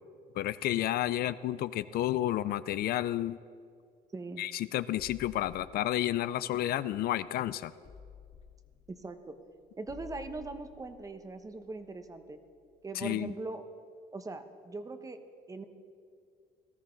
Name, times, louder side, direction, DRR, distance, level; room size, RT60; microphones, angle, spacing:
voice 1, 0.4-3.4 4.4-7.7 13.0-13.3, left 13 dB, 65° left, 15 dB, 0.4 m, -31 dB
voice 2, 4.1-4.4 8.9-9.4 9.8-12.4 12.8-13.6 14.1-15.2 15.5-15.6, right 3 dB, 20° right, 9 dB, 1.0 m, -41 dB
sound 1, 5.0-7.3 7.8-12.5, left 6 dB, 40° left, 2.3 m, -54 dB
18.5 x 13.5 x 3.9 m, 2.3 s
cardioid pair, 110°, 17 cm